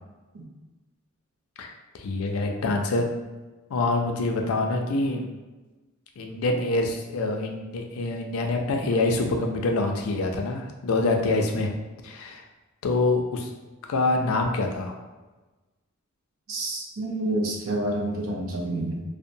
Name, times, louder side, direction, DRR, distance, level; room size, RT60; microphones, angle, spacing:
voice 1, 1.6-3.1 3.7-5.3 6.2-11.7 12.0-12.4 12.8-13.5 13.9-14.9, left 2 dB, 80° left, 3 dB, 0.4 m, -25 dB
voice 2, 16.5-19.0, right 1 dB, 75° right, 0 dB, 0.5 m, -28 dB
2.8 x 2.1 x 2.6 m, 1.2 s
head